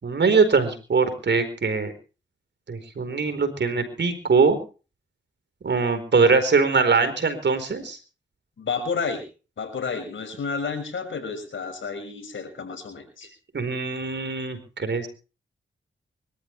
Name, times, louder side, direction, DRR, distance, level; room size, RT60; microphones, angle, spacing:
voice 1, 0.0-1.9 2.7-4.6 5.6-8.0 13.5-15.1, right 4 dB, 60° right, 10 dB, 4.5 m, -22 dB
voice 2, 8.6-9.2 9.6-13.3, left 5 dB, 75° left, 6 dB, 6.1 m, -31 dB
25.0 x 13.5 x 3.3 m, 0.36 s
cardioid pair, 50°, 20 cm